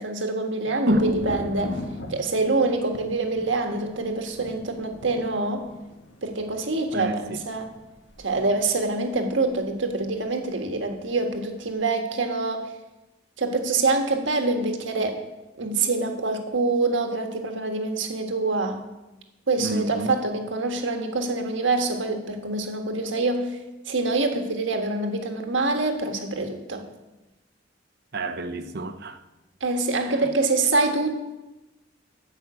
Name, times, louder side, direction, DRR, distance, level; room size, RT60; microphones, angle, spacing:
voice 1, 0.0-1.8 2.1-5.7 6.2-7.7 8.2-12.6 13.4-15.2 15.6-18.8 19.5-23.6 23.9-26.8 29.6-31.2, right 3 dB, 80° right, 1.5 m, -25 dB
Thunder, 0.9-10.6 10.8-11.5, left 1 dB, 70° left, 1.6 m, -41 dB
voice 2, 0.9-1.2 6.9-7.4 19.6-20.2 28.1-29.2 30.1-30.2, right 1 dB, 55° right, 0.8 m, -28 dB
12.5 x 5.6 x 8.2 m
head